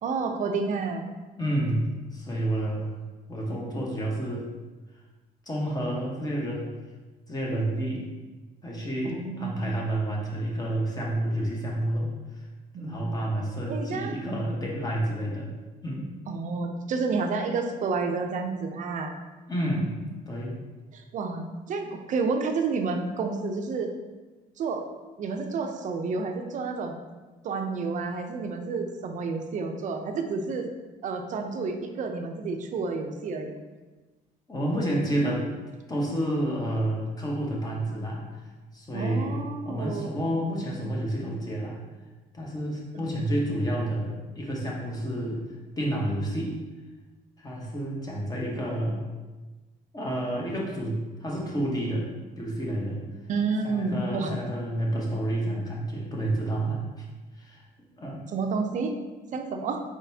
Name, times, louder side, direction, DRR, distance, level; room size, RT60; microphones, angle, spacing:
voice 1, 0.0-1.0 9.0-9.6 12.7-13.2 13.7-14.1 16.3-19.1 20.9-23.9 24.6-24.9 25.2-27.0 27.4-30.7 31.0-33.6 38.9-40.1 53.3-54.3 58.3-58.9 59.3-59.8, right 4 dB, 50° right, 5 dB, 0.5 m, -30 dB
voice 2, 1.4-1.9 2.1-2.9 3.3-4.5 5.5-6.7 7.3-8.1 8.6-12.1 12.8-15.5 15.8-16.1 19.5-20.0 20.3-20.5 34.5-35.4 35.9-38.4 38.7-41.8 42.3-45.4 45.8-46.6 47.4-49.0 49.9-52.1 52.4-53.0 53.6-57.0 57.4-57.6 58.0-58.2, right 1 dB, 20° left, -3 dB, 1.1 m, -29 dB
4.4 x 4.0 x 2.7 m, 1.2 s
cardioid pair, 110°, 17 cm